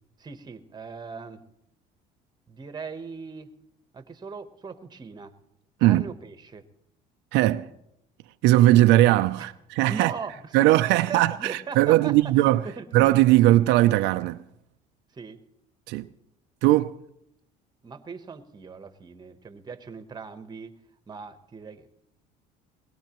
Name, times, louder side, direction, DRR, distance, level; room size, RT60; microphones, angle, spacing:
voice 1, 0.2-1.4 2.5-3.5 3.9-5.3 5.8-6.6 9.4-9.5 9.9-13.1 15.1-15.4 17.8-20.8 21.1-21.9, right 5 dB, 25° right, 1.0 m, -39 dB
voice 2, 7.3-7.7 8.4-10.1 10.5-12.6 12.9-14.4 15.9-16.1 16.6-17.0, right 16 dB, 80° right, 0.5 m, -19 dB
21.5 x 18.5 x 3.0 m
cardioid pair, 110°, 18 cm